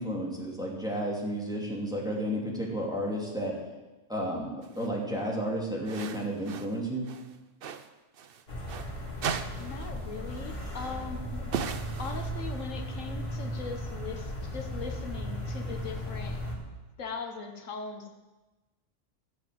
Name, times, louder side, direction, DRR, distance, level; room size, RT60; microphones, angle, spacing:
voice 1, 0.0-3.6 4.1-7.1, equal, 5° right, -3 dB, 2.8 m, -32 dB
sound 1, 4.6-4.9 5.8-6.8 7.0-8.9 9.2-10.0 10.3-10.4 11.5-12.7, right 6 dB, 55° right, 0.8 m, -37 dB
sound 2, 8.5-16.5, equal, 45° left, 2.7 m, -36 dB
voice 2, 9.6-16.4 17.0-18.1, left 4 dB, 85° left, 5 dB, 1.7 m, -40 dB
14.0 x 7.6 x 7.7 m, 1.2 s
omnidirectional pair, 1.3 m